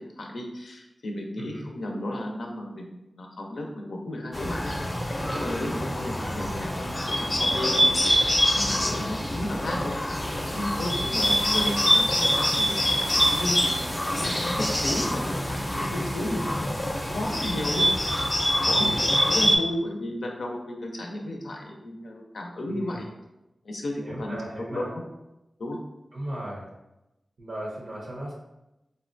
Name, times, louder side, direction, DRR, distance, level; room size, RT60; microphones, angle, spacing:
voice 1, 0.0-4.7 5.3-7.9 8.5-10.0 10.5-13.7 14.2-18.1 18.5-23.0 23.6-25.0 25.6-25.8, left 1 dB, 85° left, 1 dB, 0.5 m, -33 dB
voice 2, 1.4-1.7 5.8-5.9 8.7-9.0 10.9-11.2 15.7-16.0 18.7-19.1 22.7-23.0 24.0-24.9 26.1-26.7 27.4-28.3, right 1 dB, 80° right, -3 dB, 0.6 m, -37 dB
Bird, 4.3-19.6, equal, 35° left, 0.5 m, -25 dB
sound 1, 10.1-18.4, right 1 dB, 20° right, 0.4 m, -40 dB
3.8 x 2.2 x 2.5 m, 0.95 s
cardioid pair, 55°, 0 cm